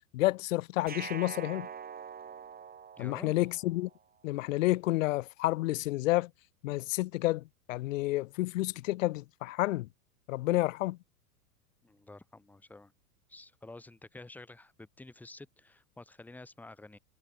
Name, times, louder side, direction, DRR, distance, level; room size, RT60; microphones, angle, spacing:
voice 1, 0.1-1.7 3.0-3.9 4.2-6.3 6.6-9.9 10.3-11.0, left 18 dB, 55° left, 0.8 m, -30 dB
sound 1, 0.9-3.9, right 7 dB, 20° right, 2.8 m, -44 dB
voice 2, 3.0-3.4 11.8-12.9 13.3-17.0, left 2 dB, 5° left, 1.0 m, -50 dB
hypercardioid pair, 100°, 47 cm